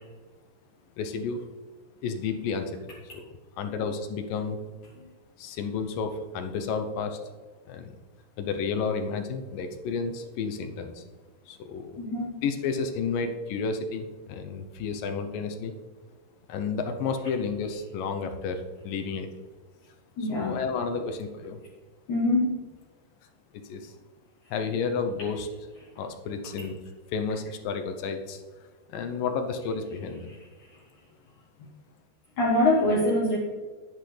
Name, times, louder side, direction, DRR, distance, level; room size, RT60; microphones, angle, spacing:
voice 1, 1.0-1.4 2.0-3.3 3.6-4.7 5.4-7.2 7.7-7.9 8.4-11.0 11.5-12.0 12.4-15.7 16.5-19.3 20.3-21.6 23.6-24.0 24.5-25.5 26.0-26.7 27.1-28.4 28.9-30.3, left 5 dB, 75° left, 7 dB, 2.3 m, -31 dB
voice 2, 12.0-12.4 20.2-20.6 22.1-22.7 30.3-30.8 31.6-31.7 32.4-33.4, left 1 dB, 55° left, -6 dB, 2.7 m, -25 dB
11.0 x 10.0 x 3.3 m, 1.4 s
omnidirectional pair, 4.5 m